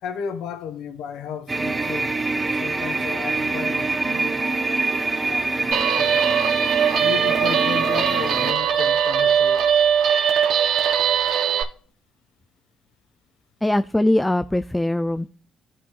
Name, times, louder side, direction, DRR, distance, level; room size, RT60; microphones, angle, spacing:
voice 1, 0.0-2.2 2.5-6.3 7.0-9.9, left 7 dB, 85° left, 1.1 m, -34 dB
sound 1, 1.5-8.5, right 3 dB, 25° right, 1.0 m, -25 dB
Guitar, 5.7-11.6, right 8 dB, 75° right, 1.3 m, -20 dB
voice 2, 13.6-15.3, left 1 dB, 10° left, 0.4 m, -21 dB
14.0 x 5.6 x 2.4 m
cardioid pair, 90°, 0 cm